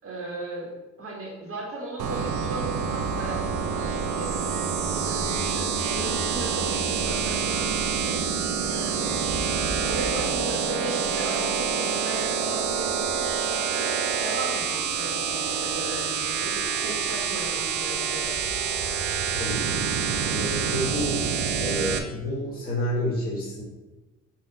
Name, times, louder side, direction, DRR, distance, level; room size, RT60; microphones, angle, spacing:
voice 1, 0.0-8.3 8.6-9.1 9.4-13.9 14.2-18.5, right 2 dB, 45° right, -3 dB, 1.6 m, -37 dB
sound 1, 2.0-22.0, right 6 dB, 75° right, 0.8 m, -27 dB
voice 2, 19.4-19.9 20.3-21.2 21.6-23.6, equal, 30° left, -5 dB, 2.0 m, -29 dB
6.9 x 2.8 x 5.6 m, 1.1 s
cardioid pair, 90°, 30 cm